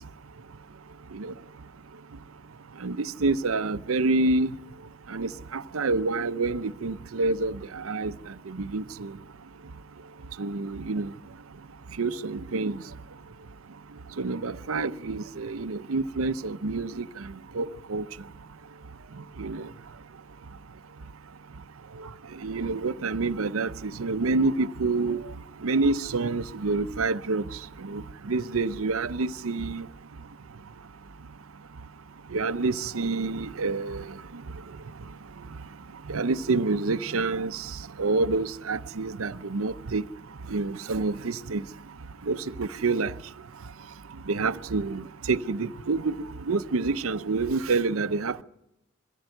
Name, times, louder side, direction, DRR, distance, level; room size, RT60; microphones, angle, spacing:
voice 1, 2.8-4.5 5.1-7.6 7.8-8.1 8.5-9.1 10.4-11.1 12.0-12.8 14.2-17.1 17.6-18.0 19.4-19.6 22.4-25.2 25.6-27.4 27.8-28.0 28.3-29.8 32.3-34.0 36.1-37.6 38.0-40.0 40.5-41.6 42.3-43.1 44.3-46.1 46.5-48.4, right 3 dB, 90° right, 0.7 m, -27 dB
22.5 x 15.0 x 7.8 m
head